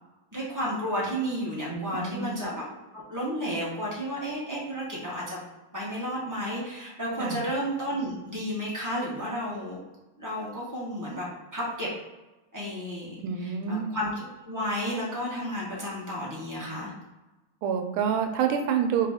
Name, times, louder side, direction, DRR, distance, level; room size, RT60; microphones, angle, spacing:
voice 1, 0.3-2.6 2.9-5.4 5.7-9.8 10.2-11.2 11.5-11.9 12.5-16.9, equal, 25° right, -7 dB, 0.4 m, -32 dB
voice 2, 1.7-2.4 7.2-7.4 13.2-13.9 17.6-19.1, right 7 dB, 85° right, 4 dB, 1.5 m, -27 dB
3.6 x 3.2 x 3.5 m, 1.1 s
omnidirectional pair, 2.3 m